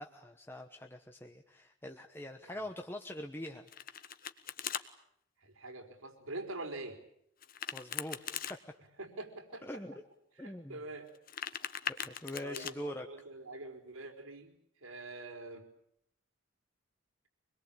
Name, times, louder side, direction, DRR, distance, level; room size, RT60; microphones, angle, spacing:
voice 1, 0.0-3.7 7.7-8.6 9.6-10.0 10.4-10.8 12.0-13.1, left 1 dB, 10° left, 4 dB, 1.1 m, -43 dB
Domestic sounds home sounds, 3.4-4.8 7.4-8.6 11.1-12.7, left 9 dB, 45° left, 1.3 m, -40 dB
voice 2, 5.4-7.0 9.0-9.6 10.4-11.1 12.4-14.5 14.8-15.6, right 2 dB, 90° right, 5 dB, 4.8 m, -44 dB
25.0 x 21.5 x 8.8 m, 0.72 s
head